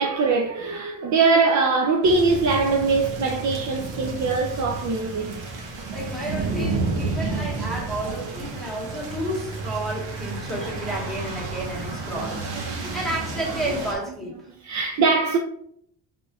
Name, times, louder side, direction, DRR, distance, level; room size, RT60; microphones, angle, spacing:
voice 1, 0.0-5.5 8.1-8.2 12.3-13.0 14.6-15.4, right 4 dB, 45° right, 0.5 m, -22 dB
sound 1, 2.0-13.9, right 3 dB, 85° right, 1.2 m, -31 dB
voice 2, 5.9-14.5, right 1 dB, ahead, 1.3 m, -31 dB
5.3 x 3.7 x 2.3 m
cardioid pair, 155°, 43 cm